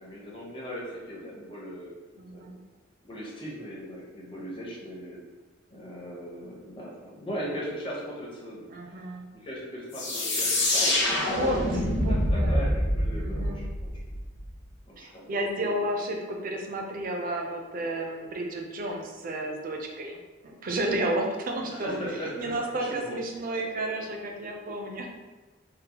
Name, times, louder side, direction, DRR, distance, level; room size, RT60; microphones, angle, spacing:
voice 1, 0.0-1.9 2.3-2.4 3.0-5.2 5.7-9.0 9.3-14.2 14.9-15.3 21.6-23.2, equal, 25° left, -5 dB, 0.8 m, -38 dB
voice 2, 2.2-2.6 8.7-9.3 11.3-12.7 13.1-13.7 15.0-20.2 20.4-22.0 22.4-25.1, right 1 dB, 45° right, 2 dB, 0.4 m, -32 dB
sound 1, 9.9-14.5, left 1 dB, 65° left, 0.7 m, -26 dB
3.7 x 2.1 x 2.8 m, 1.3 s
head